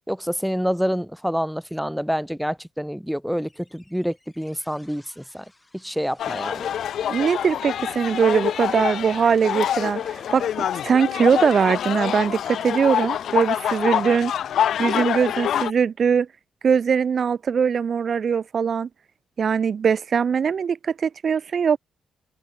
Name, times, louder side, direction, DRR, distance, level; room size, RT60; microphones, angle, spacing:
voice 1, 0.1-5.5 5.7-6.8, equal, ahead, 0.6 m, -27 dB
sound 1, 3.4-16.1, left 2 dB, 15° left, 6.7 m, -50 dB
sound 2, 6.2-15.7, left 10 dB, 70° left, 0.4 m, -26 dB
voice 2, 7.1-10.5 10.8-14.3 14.8-16.3 16.6-18.9 19.4-21.8, right 6 dB, 55° right, 1.4 m, -21 dB
supercardioid pair, 65°, 0 cm